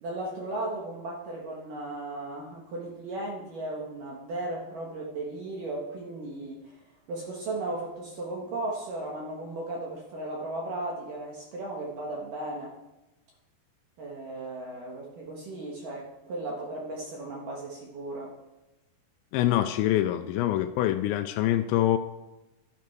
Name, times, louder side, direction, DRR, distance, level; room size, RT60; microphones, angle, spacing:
voice 1, 0.0-6.8 7.1-12.8 14.0-18.3, right 2 dB, 60° right, -2 dB, 2.6 m, -36 dB
voice 2, 19.3-22.0, left 13 dB, 85° left, 7 dB, 2.9 m, -25 dB
12.5 x 12.0 x 4.6 m, 1.0 s
omnidirectional pair, 5.2 m